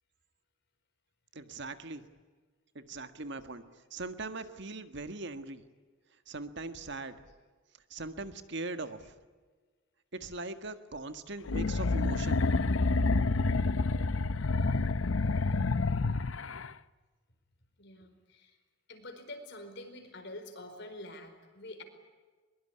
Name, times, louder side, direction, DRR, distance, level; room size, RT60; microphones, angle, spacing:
voice 1, 1.3-2.1 2.7-3.6 3.9-5.6 6.3-7.2 7.9-9.1 10.1-12.4, right 2 dB, 60° right, 9 dB, 1.7 m, -40 dB
sound 1, 11.5-16.7, left 3 dB, 75° left, 0.7 m, -28 dB
voice 2, 17.8-18.6 18.9-21.8, left 1 dB, 60° left, 7 dB, 4.7 m, -46 dB
22.5 x 22.0 x 9.9 m, 1.4 s
head